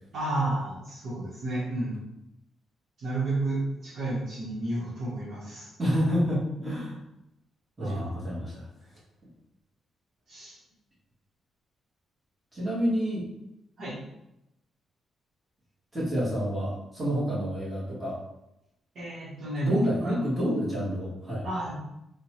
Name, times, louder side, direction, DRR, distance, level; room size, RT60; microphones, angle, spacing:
voice 1, 0.1-2.0 3.0-5.7 7.8-8.1 10.3-10.6 13.8-14.0 18.9-20.6 21.4-21.7, right 2 dB, 50° right, -9 dB, 1.0 m, -31 dB
voice 2, 5.8-7.0 7.8-8.7 12.5-13.2 15.9-18.1 19.6-21.5, equal, 15° right, -9 dB, 1.1 m, -28 dB
4.3 x 2.2 x 3.0 m, 0.86 s
cardioid pair, 170°, 0 cm